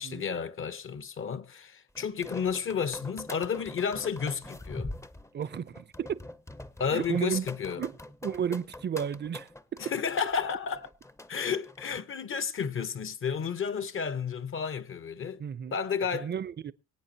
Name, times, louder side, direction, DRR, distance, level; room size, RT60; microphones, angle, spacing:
voice 1, 0.0-4.9 6.8-7.8 9.8-10.9 11.3-15.4 15.7-16.3, left 6 dB, 45° left, 0.9 m, -32 dB
sound 1, 1.9-12.0, left 1 dB, 10° left, 0.6 m, -44 dB
voice 2, 5.3-6.2 6.9-7.5 7.8-8.0 8.2-9.9 15.4-15.8 16.1-16.7, right 8 dB, 35° right, 0.6 m, -33 dB
24.5 x 8.6 x 2.8 m
cardioid pair, 90°, 30 cm